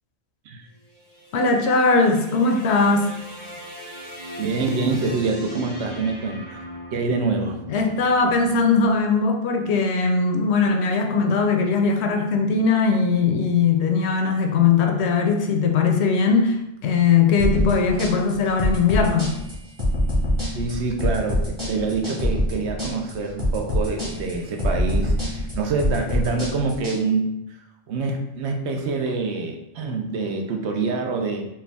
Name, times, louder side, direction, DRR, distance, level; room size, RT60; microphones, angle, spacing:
sound 1, 0.7-9.0, equal, 40° right, 1.7 m, -40 dB
voice 1, 1.3-3.1 7.7-19.3, left 4 dB, 70° left, 4 dB, 0.8 m, -20 dB
voice 2, 4.4-6.6 6.9-7.6 20.4-27.3 27.9-31.5, right 4 dB, 75° right, 3 dB, 0.9 m, -26 dB
sound 2, 17.4-27.0, left 1 dB, 25° right, 1.3 m, -24 dB
4.5 x 2.4 x 3.4 m, 0.86 s
omnidirectional pair, 1.2 m